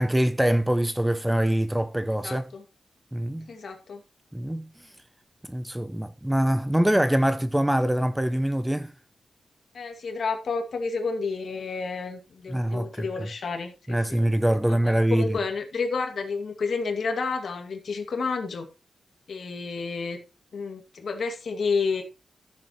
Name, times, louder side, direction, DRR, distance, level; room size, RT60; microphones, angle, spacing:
voice 1, 0.0-2.5 3.1-3.5 4.3-4.7 5.4-8.9 12.5-13.3 13.9-15.4, right 1 dB, 5° right, 0.5 m, -24 dB
voice 2, 2.2-2.6 3.5-4.0 9.7-14.2 14.7-18.7 19.3-20.2 20.5-22.0, left 4 dB, 60° left, 2.1 m, -30 dB
13.5 x 7.3 x 3.1 m
wide cardioid pair, 135°, 0 cm